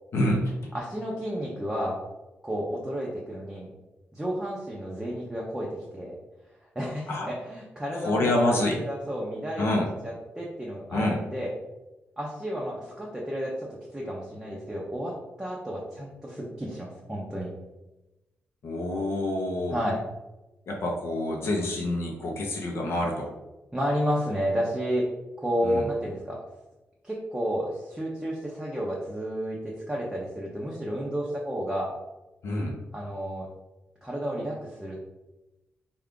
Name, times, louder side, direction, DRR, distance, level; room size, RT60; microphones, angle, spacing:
voice 1, 0.1-0.7 7.1-7.3 8.0-8.8 9.6-9.9 10.9-11.2 18.6-19.8 20.7-23.3 25.6-25.8 32.4-32.8, left 1 dB, 65° left, 0 dB, 0.6 m, -27 dB
voice 2, 0.7-2.0 2.4-3.7 4.1-6.2 6.8-9.6 10.0-11.5 12.2-13.7 13.9-15.1 15.4-17.5 19.7-20.0 23.7-25.1 25.4-26.4 27.0-31.9 32.9-33.5 34.0-35.0, equal, 10° right, -4 dB, 0.5 m, -31 dB
3.6 x 2.3 x 3.6 m, 1.0 s
wide cardioid pair, 150°, 5 cm